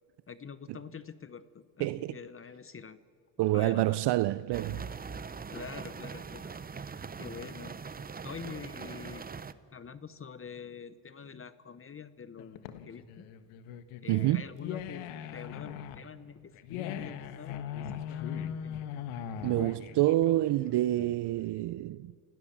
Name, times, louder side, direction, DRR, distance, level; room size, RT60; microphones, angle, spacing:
voice 1, 0.3-3.0 3.5-4.0 5.5-6.5 7.2-7.8 8.2-9.3 9.7-13.3 14.0-18.8, left 6 dB, 25° left, 0.9 m, -46 dB
voice 2, 1.8-2.1 3.4-4.9 14.1-14.4 19.4-22.1, right 16 dB, 55° right, 0.6 m, -27 dB
sound 1, 4.5-9.5, right 5 dB, 20° right, 0.7 m, -42 dB
sound 2, 12.4-21.4, left 9 dB, 80° left, 1.5 m, -40 dB
27.0 x 17.5 x 7.4 m
cardioid pair, 95°, 50 cm